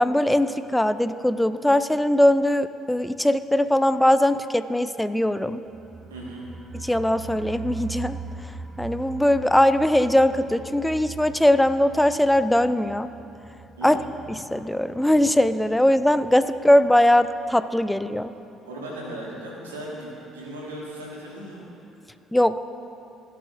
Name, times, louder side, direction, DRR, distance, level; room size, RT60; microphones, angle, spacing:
voice 1, 0.0-5.6 6.7-8.2 8.8-13.1 13.8-14.0 14.3-18.3 22.3-22.6, left 1 dB, 5° left, 12 dB, 0.4 m, -20 dB
sound 1, 5.7-16.4 16.7-16.8 17.1-17.2, right 5 dB, 20° right, 0.8 m, -41 dB
voice 2, 6.1-6.4 13.8-14.1 18.6-21.6, right 1 dB, 85° right, -4 dB, 1.8 m, -37 dB
15.5 x 11.0 x 2.6 m, 2.8 s
figure-of-eight pair, 50°, 0 cm